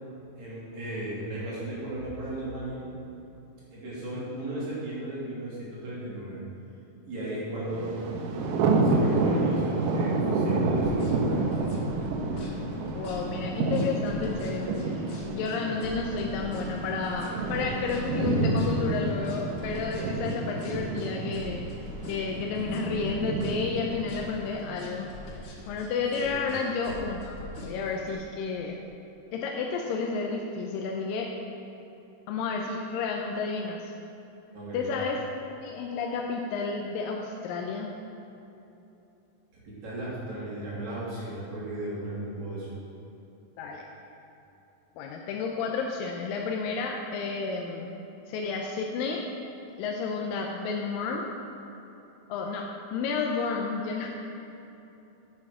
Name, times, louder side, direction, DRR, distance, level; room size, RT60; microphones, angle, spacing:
voice 1, 0.4-2.8 3.7-6.4 7.1-7.9 8.8-11.7 26.2-26.3 34.5-34.9 39.6-42.7, right 1 dB, 55° right, -8 dB, 3.9 m, -36 dB
Thunder, 7.7-24.7, right 3 dB, 75° right, 2.4 m, -29 dB
sound 1, 10.7-28.1, left 1 dB, 55° left, 1.6 m, -43 dB
voice 2, 12.9-15.0 15.3-21.6 22.1-25.1 25.7-27.4 27.6-28.8 29.3-31.3 32.3-33.9 34.7-35.2 35.6-38.0 43.6-43.8 45.0-47.9 48.3-49.2 49.8-51.3 52.3-52.6 52.9-54.1, left 4 dB, 80° left, 0 dB, 2.3 m, -31 dB
9.9 x 8.5 x 5.0 m, 3.0 s
omnidirectional pair, 4.1 m